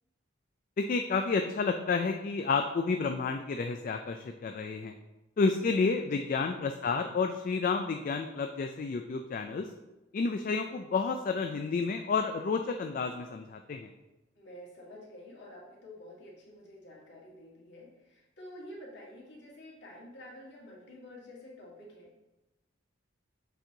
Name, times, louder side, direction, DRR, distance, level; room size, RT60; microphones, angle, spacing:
voice 1, 0.8-4.9 5.4-9.7 10.1-13.9, left 4 dB, 45° left, 5 dB, 0.3 m, -30 dB
voice 2, 6.1-6.6 14.4-22.2, left 1 dB, 60° left, -4 dB, 1.9 m, -49 dB
6.9 x 4.5 x 3.8 m, 1.0 s
head